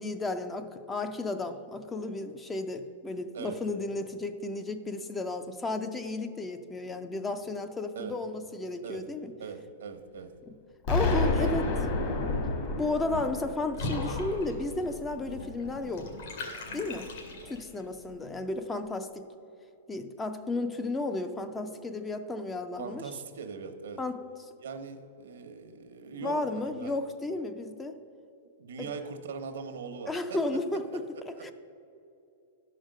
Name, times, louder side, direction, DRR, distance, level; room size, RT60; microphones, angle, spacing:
voice 1, 0.0-9.3 10.5-10.6 10.9-11.7 12.8-16.1 16.7-17.1 17.4-19.3 19.9-23.0 24.0-24.3 26.2-28.0 28.8-28.9 30.1-31.5, left 2 dB, 10° left, 9 dB, 0.4 m, -33 dB
voice 2, 9.4-10.3 11.0-11.9 22.8-24.0 24.6-27.0 28.6-30.4 30.9-31.4, right 5 dB, 85° right, 6 dB, 0.9 m, -41 dB
Explosion, 10.8-15.7, left 3 dB, 40° left, 1.3 m, -30 dB
Water / Bathtub (filling or washing), 13.7-17.8, left 2 dB, 65° left, 2.0 m, -39 dB
11.0 x 5.0 x 6.4 m, 2.7 s
supercardioid pair, 160°, 0 cm